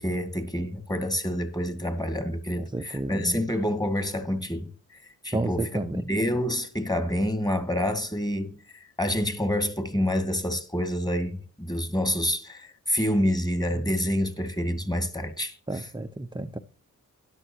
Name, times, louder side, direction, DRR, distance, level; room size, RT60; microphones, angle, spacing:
voice 1, 0.0-4.7 5.2-15.9, equal, 10° left, 2.3 m, -28 dB
voice 2, 2.6-3.4 5.3-6.0 15.7-16.6, right 2 dB, 15° right, 0.9 m, -31 dB
12.5 x 11.0 x 2.9 m
cardioid pair, 75°, 32 cm